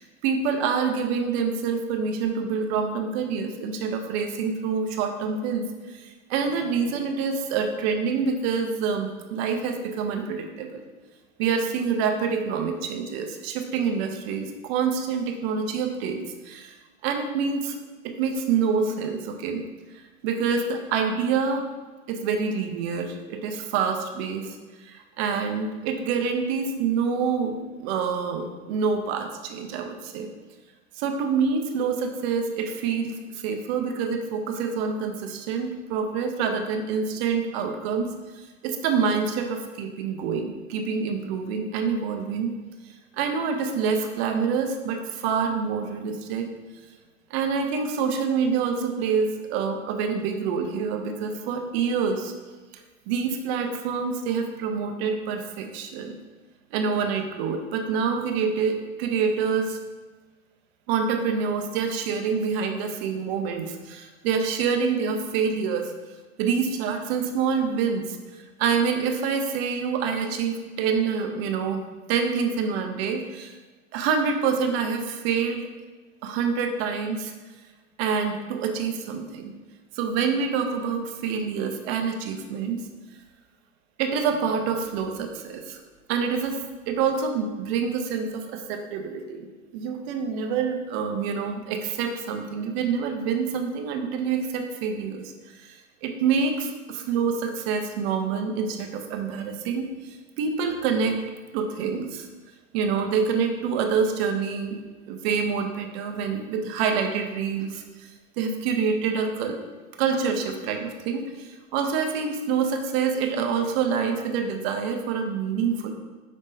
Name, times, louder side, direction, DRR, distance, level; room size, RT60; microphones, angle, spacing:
voice 1, 0.0-10.8 11.4-16.2 16.4-16.7 17.0-17.7 18.0-19.6 20.2-21.7 22.1-24.6 24.8-30.3 31.0-38.1 38.4-42.5 43.1-46.5 47.3-52.3 53.1-56.1 56.7-59.8 60.9-65.9 66.4-71.8 72.1-73.6 73.9-75.6 76.2-77.3 78.0-79.5 79.9-82.8 84.0-85.8 86.1-86.6 86.9-89.5 89.7-95.7 96.0-101.2 101.5-102.3 102.7-104.8 105.1-108.1 108.4-109.6 110.0-115.9, right 6 dB, 50° right, 4 dB, 0.7 m, -26 dB
5.2 x 3.5 x 2.7 m, 1.3 s
hypercardioid pair, 110°, 41 cm